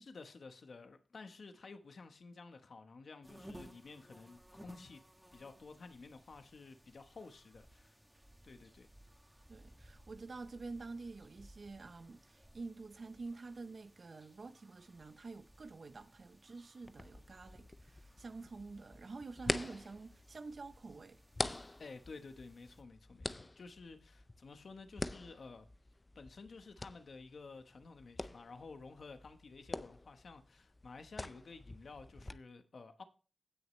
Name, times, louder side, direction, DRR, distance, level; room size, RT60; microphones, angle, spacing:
voice 1, 0.0-5.0 5.3-8.0 8.4-8.9 21.8-25.7 26.1-33.0, left 4 dB, 65° left, 1.1 m, -52 dB
sound 1, 3.2-22.8, equal, 5° right, 1.9 m, -61 dB
voice 2, 9.5-21.2, right 3 dB, 55° right, 0.7 m, -48 dB
sound 2, 16.8-32.3, left 2 dB, 25° left, 0.5 m, -45 dB
16.5 x 6.4 x 3.1 m
wide cardioid pair, 100°, 0 cm